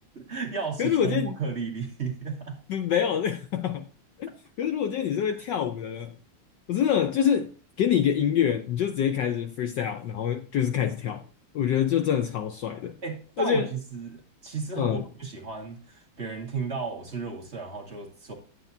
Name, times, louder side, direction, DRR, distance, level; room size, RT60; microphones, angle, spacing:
voice 1, 0.1-2.6 5.3-5.4 13.0-18.3, right 5 dB, 35° right, 1.7 m, -34 dB
voice 2, 0.8-1.4 2.7-3.8 4.2-4.3 4.6-6.2 6.7-7.5 7.8-11.2 11.5-13.0 13.4-13.7 14.8-15.1, left 9 dB, 70° left, 1.1 m, -26 dB
10.0 x 8.2 x 2.7 m
omnidirectional pair, 2.4 m